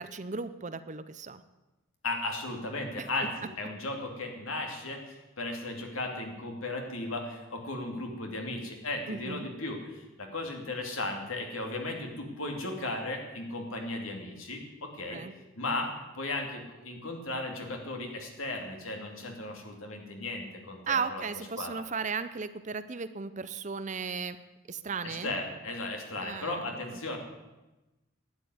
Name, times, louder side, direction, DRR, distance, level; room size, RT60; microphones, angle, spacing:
voice 1, 0.0-1.4 3.0-3.1 9.1-9.5 15.1-15.3 20.9-24.4 24.7-25.3 26.1-27.2, right 5 dB, 35° right, 12 dB, 0.6 m, -36 dB
voice 2, 2.0-15.2 15.6-21.2 21.6-21.7 25.0-27.2, left 2 dB, 80° left, 2 dB, 2.8 m, -36 dB
12.0 x 9.3 x 9.4 m, 1.1 s
head